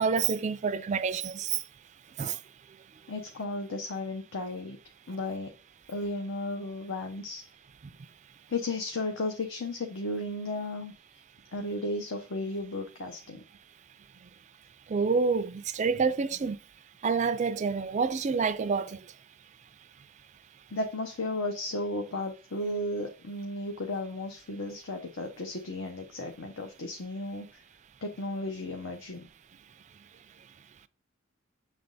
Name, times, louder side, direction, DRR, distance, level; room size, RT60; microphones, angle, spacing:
voice 1, 0.0-1.6 2.2-2.4 14.9-16.6 17.0-19.0, right 5 dB, 35° right, 0.4 m, -27 dB
voice 2, 3.1-4.8 5.1-5.5 5.9-7.4 8.5-10.9 11.5-13.4 20.7-27.5 28.0-29.3, left 2 dB, 65° left, 0.7 m, -34 dB
7.3 x 3.4 x 3.9 m
head